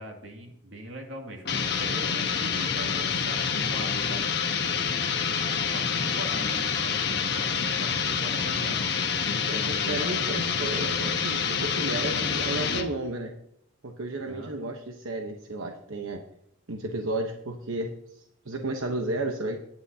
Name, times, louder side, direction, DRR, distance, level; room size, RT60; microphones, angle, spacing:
voice 1, 0.0-4.3 5.4-8.8 14.2-14.7, right 1 dB, 70° right, 2 dB, 2.4 m, -42 dB
sound 1, 1.5-12.9, left 6 dB, 55° left, 1.2 m, -27 dB
voice 2, 9.5-13.3 13.8-16.2 16.7-19.6, right 2 dB, 85° right, 3 dB, 1.1 m, -33 dB
18.5 x 10.0 x 2.8 m, 0.77 s
head